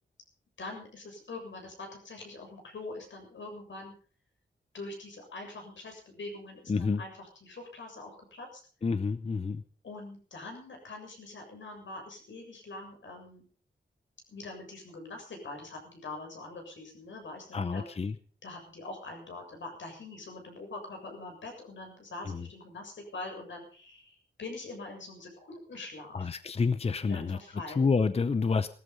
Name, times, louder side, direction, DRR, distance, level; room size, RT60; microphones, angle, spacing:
voice 1, 0.6-3.9 4.7-8.6 9.8-13.4 14.3-17.8 18.4-26.3 27.1-27.9, left 2 dB, 80° left, 3 dB, 7.2 m, -44 dB
voice 2, 6.7-7.0 8.8-9.6 17.5-18.2 22.2-22.5 26.1-28.7, left 4 dB, 35° left, 12 dB, 0.7 m, -29 dB
18.5 x 14.0 x 5.4 m, 0.43 s
wide cardioid pair, 160°, 19 cm